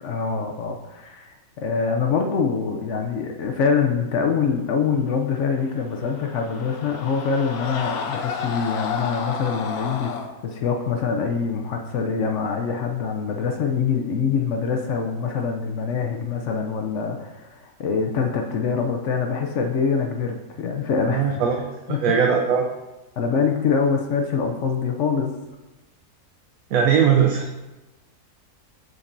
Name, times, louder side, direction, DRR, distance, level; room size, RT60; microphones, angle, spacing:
voice 1, 0.0-10.1 10.4-21.4 21.9-22.0 23.2-25.3, left 5 dB, 60° left, 3 dB, 0.8 m, -24 dB
sound 1, 5.8-10.3, left 6 dB, 80° left, 1.2 m, -31 dB
voice 2, 21.1-22.7 26.7-27.5, right 7 dB, 75° right, 2 dB, 1.0 m, -20 dB
7.0 x 6.6 x 2.6 m, 1.1 s
omnidirectional pair, 1.6 m